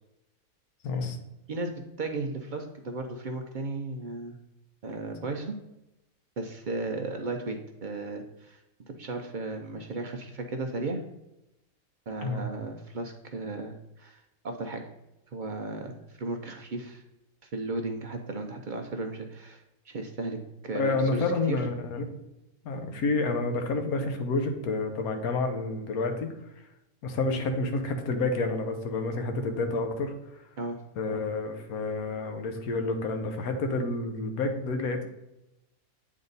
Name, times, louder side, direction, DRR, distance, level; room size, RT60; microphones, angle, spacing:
voice 1, 0.8-1.2 12.2-12.5 20.7-22.1 22.6-26.3 27.0-30.1 31.0-35.1, left 3 dB, 75° left, 5 dB, 1.3 m, -29 dB
voice 2, 1.5-4.4 4.8-5.6 6.4-8.6 8.9-11.0 12.1-14.8 15.3-17.0 17.4-21.6 30.6-30.8, right 2 dB, 60° right, 3 dB, 0.5 m, -35 dB
8.1 x 3.6 x 3.9 m, 0.90 s
omnidirectional pair, 1.6 m